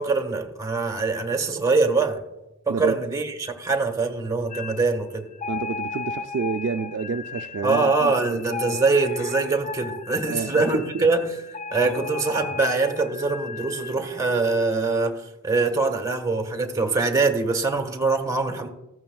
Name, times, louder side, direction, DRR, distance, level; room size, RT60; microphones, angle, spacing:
voice 1, 0.0-2.2 2.7-5.3 7.6-11.3 11.7-18.7, right 3 dB, 15° right, 1.4 m, -23 dB
sound 1, 4.5-4.9 5.3-13.9, left 5 dB, 35° left, 0.4 m, -36 dB
voice 2, 5.5-8.8 10.3-11.1 11.9-12.0, right 5 dB, 55° right, 0.4 m, -30 dB
16.0 x 14.0 x 2.3 m
head